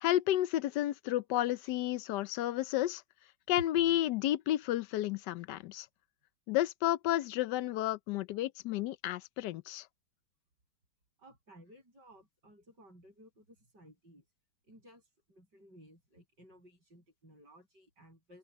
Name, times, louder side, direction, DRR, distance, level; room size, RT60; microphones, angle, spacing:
voice 1, 0.0-3.0 3.5-5.9 6.5-9.9, left 13 dB, 80° left, 1.3 m, -31 dB
voice 2, 11.2-14.2 14.6-15.0 15.3-18.4, equal, 85° right, 8.4 m, -58 dB
open air
omnidirectional pair, 1.8 m